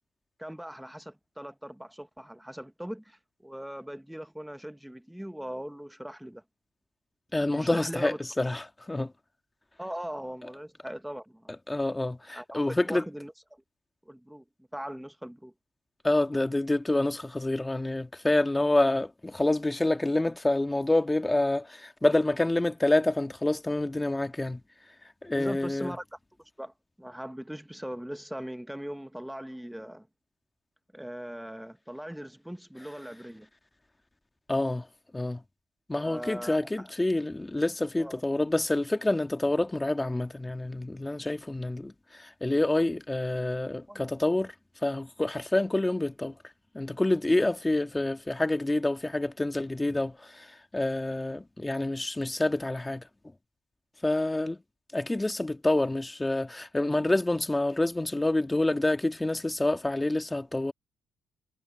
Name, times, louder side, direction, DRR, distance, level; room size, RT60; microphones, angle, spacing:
voice 1, 0.4-6.4 7.5-8.2 9.8-11.5 12.3-12.6 12.9-13.6 14.0-14.4 14.7-15.5 25.3-26.2 26.6-30.1 30.9-33.5 36.0-36.9 38.0-38.2 43.9-44.0, equal, 5° right, 1.3 m, -40 dB
voice 2, 7.3-9.1 11.7-13.1 16.0-24.6 25.2-25.9 34.5-34.9 35.1-35.4 35.9-44.5 44.8-46.4 46.7-50.5 50.7-53.0 54.0-54.6 54.9-60.7, left 2 dB, 15° left, 1.8 m, -27 dB
cardioid pair, 90°, 0 cm